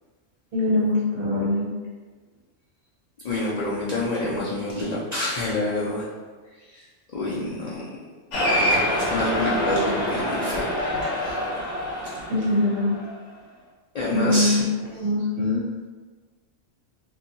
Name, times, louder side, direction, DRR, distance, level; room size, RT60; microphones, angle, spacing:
voice 1, 0.5-1.7 12.3-13.0 14.1-15.6, left 2 dB, 55° right, -5 dB, 0.8 m, -23 dB
voice 2, 3.2-6.1 6.7-6.8 7.1-7.8 8.4-10.7 13.9-14.6, left 2 dB, 65° left, -7 dB, 0.4 m, -27 dB
Cheering, 8.3-13.1, equal, 85° left, 1.0 m, -26 dB
2.7 x 2.3 x 2.6 m, 1.4 s
omnidirectional pair, 1.2 m